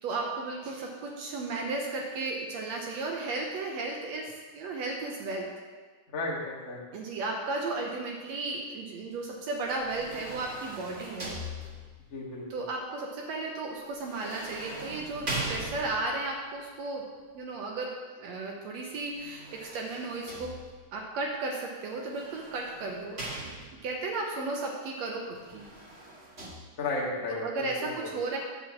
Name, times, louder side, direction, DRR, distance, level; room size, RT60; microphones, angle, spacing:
voice 1, 0.0-5.5 6.9-11.3 12.5-17.1 17.3-20.5 20.9-23.5 23.8-25.6 27.3-28.4, right 3 dB, 70° right, 0 dB, 1.8 m, -34 dB
voice 2, 6.1-6.8 12.1-12.4 23.4-23.6 26.8-28.1, left 2 dB, 40° left, -3 dB, 1.0 m, -34 dB
sound 1, 9.7-12.1 14.0-16.2 19.1-21.0 22.0-24.0 25.3-26.5, right 1 dB, 30° right, 1.1 m, -40 dB
9.7 x 3.8 x 7.1 m, 1.4 s
omnidirectional pair, 3.7 m